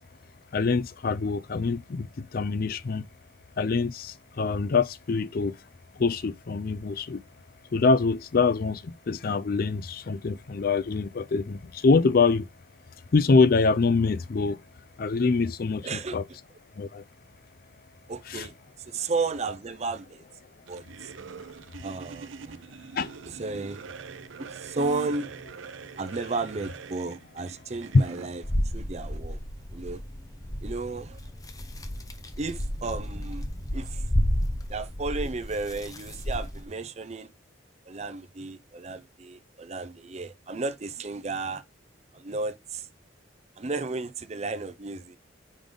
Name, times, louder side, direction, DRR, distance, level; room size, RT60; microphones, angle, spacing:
voice 1, 0.5-3.1 3.6-5.5 6.0-7.2 7.7-12.5 13.1-14.6 15.0-16.2 16.8-17.0 18.3-18.5 22.9-23.1 27.9-28.0, left 4 dB, 50° left, 0.4 m, -24 dB
voice 2, 15.8-16.2 18.1-20.2 20.7-21.1 21.8-22.6 23.2-23.8 24.4-25.3 26.0-29.4 29.7-30.0 30.6-31.2 32.4-33.5 33.7-34.1 34.7-37.3 37.9-41.6 42.1-42.9 43.6-45.2, right 3 dB, 35° right, 0.6 m, -33 dB
sound 1, 20.7-28.3, right 5 dB, 90° right, 0.6 m, -43 dB
sound 2, 28.4-36.6, equal, 20° left, 0.7 m, -31 dB
5.3 x 5.2 x 3.7 m
head